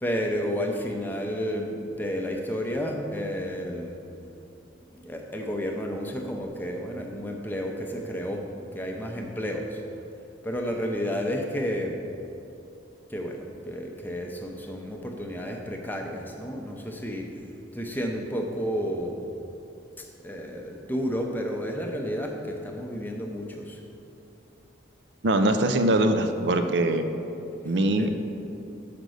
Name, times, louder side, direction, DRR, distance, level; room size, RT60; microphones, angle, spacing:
voice 1, 0.0-4.0 4.9-9.8 10.4-12.0 13.1-17.3 17.7-19.3 20.0-23.8 28.0-28.1, equal, 10° left, 2 dB, 0.6 m, -31 dB
voice 2, 25.2-27.0 27.6-28.1, right 1 dB, 65° right, 6 dB, 0.5 m, -22 dB
6.7 x 5.1 x 6.3 m, 2.8 s
head